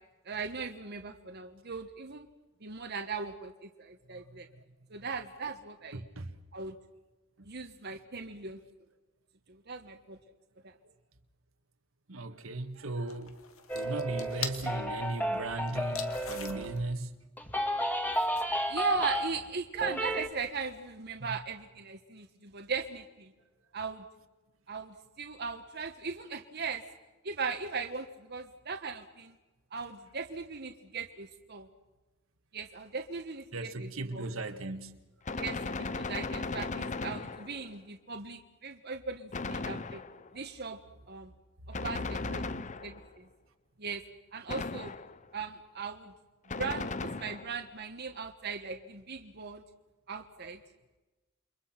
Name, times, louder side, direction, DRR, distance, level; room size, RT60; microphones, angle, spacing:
voice 1, 0.2-2.3 2.6-3.5 3.8-4.5 4.9-6.0 6.5-6.7 7.4-8.6 9.5-10.2 10.6-10.7 18.7-23.3 23.7-24.0 24.7-26.8 27.2-29.3 29.7-31.7 32.5-34.3 35.4-40.0 40.3-40.8 41.1-41.3 41.7-43.0 43.8-44.0 44.3-44.9 45.3-46.1 46.6-49.6 50.1-50.6, right 5 dB, 50° right, 1.3 m, -38 dB
voice 2, 5.9-6.3 7.4-7.5 9.7-10.0 12.1-13.4 13.7-17.1 21.3-21.4 33.5-35.0, right 2 dB, 80° right, 1.9 m, -37 dB
sound 1, 13.1-14.7 15.7-16.8 18.1-18.4, left 8 dB, 90° left, 2.4 m, -42 dB
sound 2, 13.7-16.9 17.4-19.5 19.7-20.3, equal, 10° left, 2.2 m, -33 dB
Gunshot gunfire, 35.2-37.8 39.3-40.4 41.7-43.2 44.5-45.3 46.5-47.6, left 3 dB, 35° left, 0.8 m, -37 dB
29.0 x 23.5 x 5.9 m
head